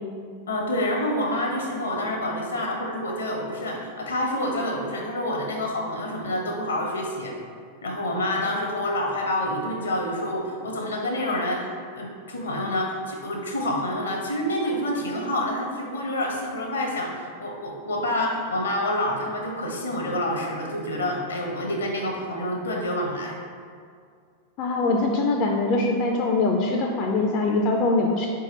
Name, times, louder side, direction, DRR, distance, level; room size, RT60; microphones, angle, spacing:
voice 1, 0.5-7.3 7.8-11.7 11.9-23.4, left 1 dB, 70° left, 0 dB, 0.7 m, -27 dB
voice 2, 24.6-28.3, left 3 dB, 40° left, 1 dB, 0.3 m, -23 dB
4.1 x 2.8 x 3.8 m, 2.2 s
figure-of-eight pair, 90°, 0 cm